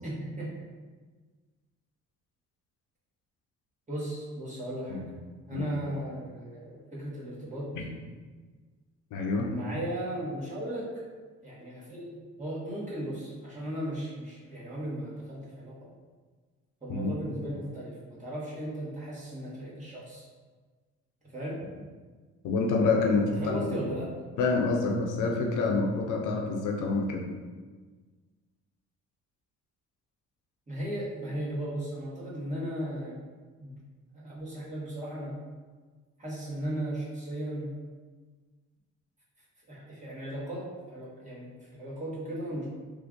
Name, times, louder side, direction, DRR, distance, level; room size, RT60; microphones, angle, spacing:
voice 1, 0.0-0.5 3.9-5.0 5.5-7.7 9.5-10.9 11.4-12.1 12.4-15.8 16.8-20.3 21.3-21.6 23.4-24.1 30.7-33.2 33.6-33.8 34.1-35.3 36.2-37.7 39.7-42.7, right 1 dB, 25° right, -7 dB, 1.4 m, -36 dB
voice 2, 9.1-9.5 16.9-17.1 22.4-23.9 24.4-27.3, left 3 dB, 85° left, 1 dB, 0.6 m, -27 dB
3.2 x 2.5 x 3.6 m, 1.4 s
cardioid pair, 90°, 30 cm